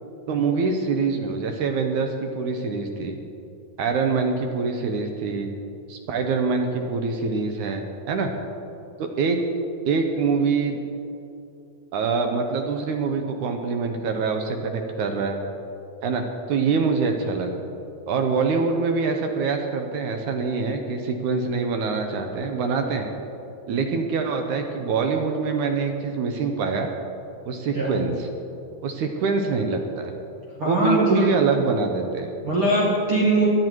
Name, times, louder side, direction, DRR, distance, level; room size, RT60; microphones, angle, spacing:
voice 1, 0.3-3.2 3.8-5.5 5.9-8.3 9.0-9.4 9.9-10.8 11.9-15.4 16.0-17.6 18.1-23.1 23.7-26.9 27.5-28.3 28.8-30.1 30.7-32.3, right 4 dB, 70° right, 4 dB, 2.2 m, -25 dB
voice 2, 30.6-31.3 32.4-33.5, right 2 dB, 45° right, -5 dB, 2.4 m, -21 dB
18.5 x 12.5 x 4.7 m, 2.7 s
omnidirectional pair, 4.1 m